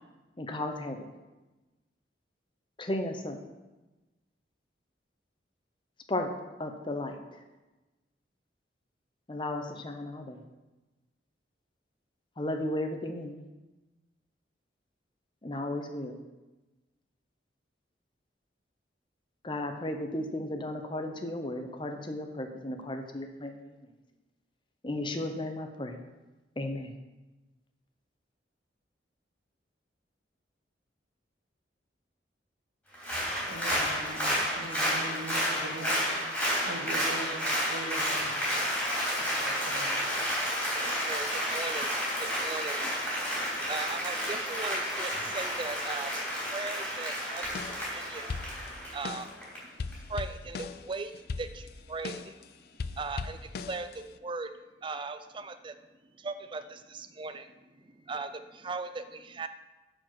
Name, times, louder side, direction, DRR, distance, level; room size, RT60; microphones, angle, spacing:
voice 1, 0.4-1.1 2.8-3.4 6.1-6.3 6.6-7.2 9.3-10.4 12.4-13.4 15.4-16.1 19.4-23.5 24.8-26.0 26.6-26.9, left 1 dB, 25° left, 5 dB, 0.8 m, -34 dB
Applause, 32.9-49.6 49.9-50.0, equal, 5° left, 3.5 m, -31 dB
voice 2, 33.5-36.2 36.6-38.5 39.2-40.1, right 1 dB, 70° right, 1 dB, 1.6 m, -42 dB
voice 3, 40.7-46.1 46.5-48.4 48.8-54.5 54.8-55.8 56.2-59.5, right 3 dB, 25° right, 10 dB, 0.5 m, -39 dB
sound 1, 47.4-48.0 48.3-49.4 49.8-52.4 52.8-54.2, left 4 dB, 60° left, 0.4 m, -39 dB
9.4 x 5.0 x 5.9 m, 1.1 s
head